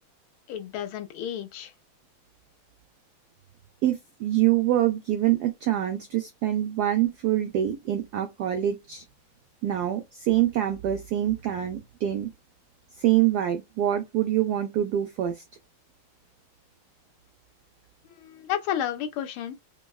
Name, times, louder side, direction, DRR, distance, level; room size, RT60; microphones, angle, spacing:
voice 1, 0.5-1.7 18.2-19.6, left 10 dB, 85° left, 1.5 m, -31 dB
voice 2, 3.8-9.0 9.6-12.3 13.0-15.4, right 12 dB, 80° right, 0.8 m, -25 dB
5.5 x 2.1 x 2.3 m
omnidirectional pair, 2.3 m